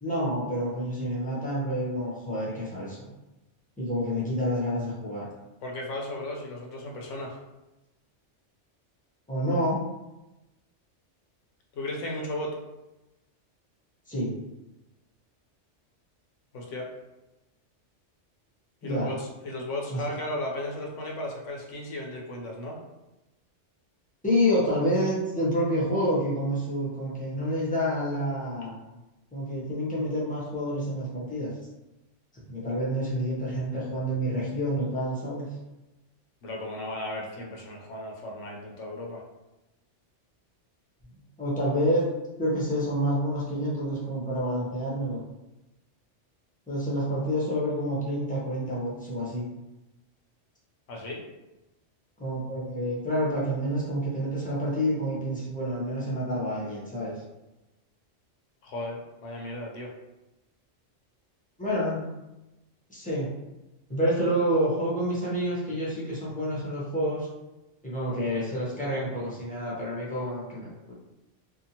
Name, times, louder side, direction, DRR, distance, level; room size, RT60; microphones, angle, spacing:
voice 1, 0.0-3.1 3.8-5.2 9.3-9.8 14.1-14.3 18.8-19.1 19.9-20.0 24.2-28.7 29.3-31.5 32.5-35.5 41.4-42.0 42.4-45.2 46.7-49.5 52.2-57.1 61.6-62.0 62.9-63.3 63.9-67.3 67.8-70.9, equal, 10° left, -7 dB, 0.7 m, -28 dB
voice 2, 5.6-7.4 11.7-12.5 16.5-16.9 18.8-22.8 36.4-39.2 50.9-51.2 58.6-59.9, left 1 dB, 80° left, -1 dB, 1.0 m, -35 dB
2.7 x 2.4 x 2.7 m, 0.99 s
omnidirectional pair, 1.2 m